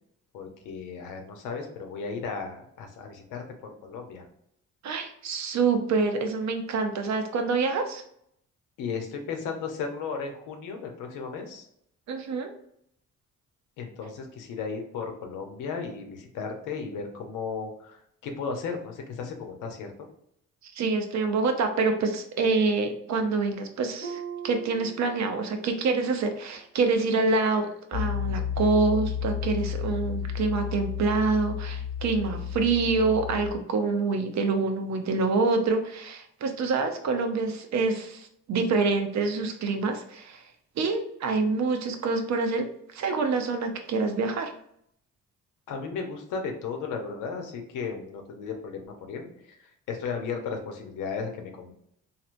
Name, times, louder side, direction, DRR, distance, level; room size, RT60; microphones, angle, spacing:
voice 1, 0.3-4.3 8.8-11.7 13.8-20.1 45.7-51.7, left 5 dB, 90° left, 3 dB, 0.8 m, -35 dB
voice 2, 4.8-8.0 12.1-12.5 20.6-40.4 40.8-42.7 42.9-44.5, right 4 dB, 65° right, 6 dB, 0.7 m, -26 dB
Harp, 24.0-25.8 26.1-26.5 27.1-27.2, right 7 dB, 30° right, 1.0 m, -41 dB
Piano, 27.9-33.5, left 9 dB, 50° left, 0.7 m, -32 dB
3.2 x 2.7 x 2.5 m, 0.71 s
cardioid pair, 90°, 30 cm